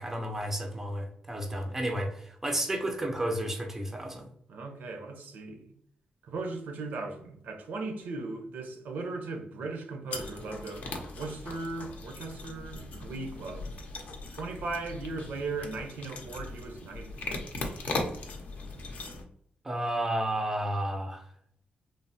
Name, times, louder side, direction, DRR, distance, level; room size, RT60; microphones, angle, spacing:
voice 1, 0.0-4.3 19.6-21.2, right 1 dB, 10° right, 3 dB, 0.4 m, -32 dB
voice 2, 4.5-5.7 6.2-13.7 14.3-17.2, right 3 dB, 75° right, 4 dB, 0.5 m, -38 dB
sound 1, 10.1-19.2, left 2 dB, 60° left, 0.5 m, -39 dB
3.2 x 2.0 x 2.5 m, 0.72 s
wide cardioid pair, 145°, 3 cm